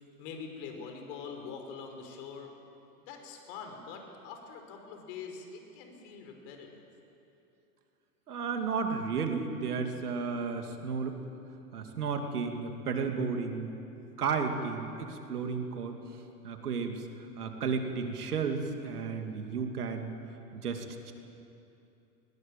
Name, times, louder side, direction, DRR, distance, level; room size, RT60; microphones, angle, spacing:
voice 1, 0.2-2.5 3.0-6.8, left 5 dB, 55° left, 4 dB, 5.4 m, -44 dB
voice 2, 8.3-11.2 11.7-13.7 14.2-16.0 16.4-17.1 17.4-20.1 20.5-21.1, right 5 dB, 80° right, 5 dB, 2.8 m, -33 dB
21.0 x 20.5 x 9.1 m, 2.8 s
hypercardioid pair, 105°, 45 cm